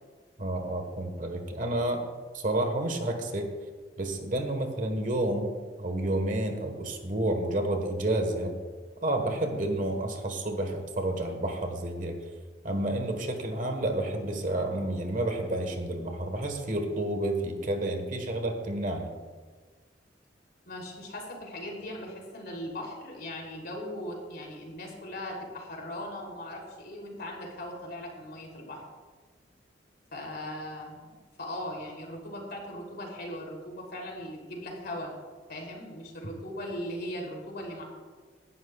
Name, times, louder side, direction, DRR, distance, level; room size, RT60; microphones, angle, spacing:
voice 1, 0.4-2.0 2.3-3.5 4.0-8.5 9.0-12.2 12.6-19.1, right 1 dB, 45° right, 5 dB, 1.4 m, -30 dB
voice 2, 20.7-28.8 30.1-35.1 35.5-37.8, left 1 dB, 60° left, -1 dB, 3.2 m, -39 dB
18.0 x 11.5 x 2.4 m, 1.4 s
head